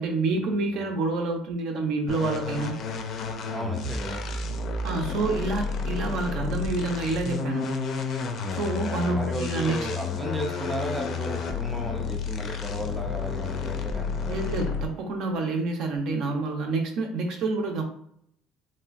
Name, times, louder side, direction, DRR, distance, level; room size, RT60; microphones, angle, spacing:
voice 1, 0.0-2.8 4.8-7.8 8.5-9.8 14.3-17.8, right 3 dB, 60° right, 3 dB, 0.6 m, -28 dB
sound 1, 2.1-15.1, left 5 dB, 45° left, 0.4 m, -31 dB
voice 2, 3.5-4.2 9.1-14.4, equal, 5° right, 0 dB, 0.5 m, -34 dB
3.1 x 2.7 x 2.5 m, 0.68 s
cardioid pair, 145°, 0 cm